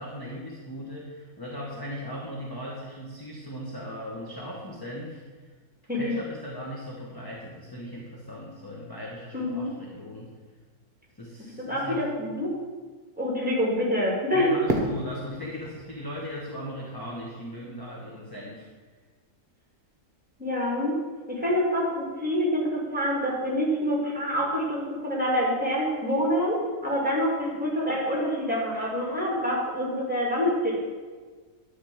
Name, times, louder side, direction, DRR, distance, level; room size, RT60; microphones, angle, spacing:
voice 1, 0.0-5.5 5.9-10.3 11.2-12.0 14.3-18.7, equal, 15° left, -3 dB, 1.1 m, -38 dB
voice 2, 9.3-9.7 11.6-12.5 13.2-14.5 20.4-21.0 21.3-30.8, equal, 5° right, -4 dB, 2.6 m, -26 dB
Fireworks, 14.7-17.7, right 2 dB, 40° right, 1.3 m, -33 dB
11.0 x 4.3 x 7.4 m, 1.4 s
omnidirectional pair, 1.6 m